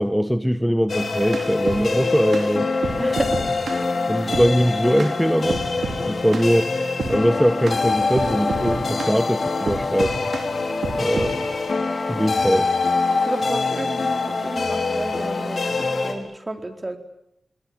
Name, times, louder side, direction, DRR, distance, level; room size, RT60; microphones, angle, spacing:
voice 1, 0.0-2.7 4.1-5.7 6.0-6.7 7.1-10.2 11.0-11.3 12.1-12.7, equal, ahead, 11 dB, 1.2 m, -21 dB
sound 1, 0.9-16.1, left 3 dB, 65° left, 5.0 m, -24 dB
sound 2, 1.0-1.8 2.3-2.5 2.8-3.8 4.3-4.5 5.0-5.1 5.5-6.0 6.3-6.5 7.0-7.2 7.7-7.8 8.2-9.2 9.7-10.5 10.8-11.3, right 4 dB, 80° right, 3.5 m, -29 dB
voice 2, 3.0-3.3 13.1-17.0, right 2 dB, 30° right, 6 dB, 4.3 m, -31 dB
28.5 x 20.5 x 9.1 m, 0.80 s
cardioid pair, 55°, 0 cm